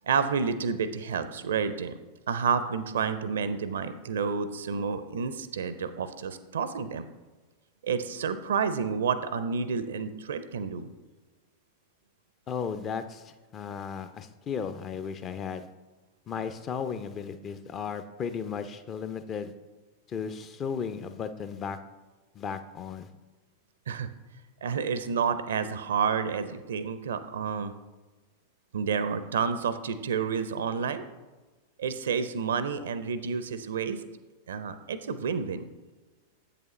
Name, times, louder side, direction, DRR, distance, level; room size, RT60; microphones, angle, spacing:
voice 1, 0.1-2.0 2.3-7.1 7.8-10.9 23.9-24.1 24.6-27.7 28.7-31.0 31.8-34.0 34.5-35.6, right 6 dB, 65° right, 12 dB, 0.5 m, -30 dB
voice 2, 12.5-15.7 16.3-19.5 20.1-21.8 22.3-23.1, left 6 dB, 30° left, 10 dB, 0.5 m, -35 dB
8.1 x 6.8 x 3.1 m, 1.2 s
figure-of-eight pair, 90°, 0 cm